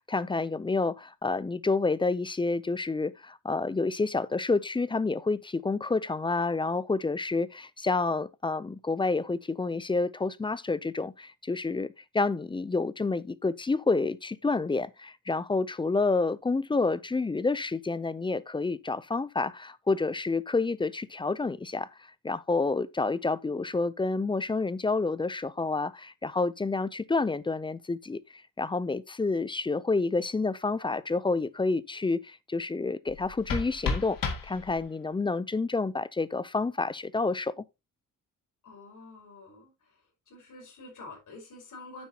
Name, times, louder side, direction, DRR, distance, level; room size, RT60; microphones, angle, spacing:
voice 1, 0.1-11.9 12.1-34.2 34.4-37.6, left 3 dB, 15° left, 0.4 m, -29 dB
sound 1, 33.1-35.1, left 4 dB, 80° left, 2.3 m, -33 dB
voice 2, 38.6-39.9 40.3-42.1, left 2 dB, 65° left, 5.4 m, -47 dB
9.6 x 7.3 x 2.8 m
wide cardioid pair, 150°, 34 cm